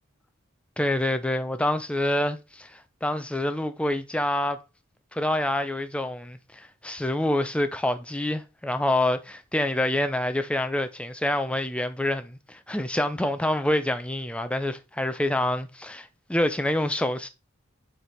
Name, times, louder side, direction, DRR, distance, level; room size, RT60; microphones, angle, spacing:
voice 1, 0.8-4.6 5.1-17.3, left 1 dB, 5° left, 0.5 m, -27 dB
6.5 x 3.5 x 4.4 m
head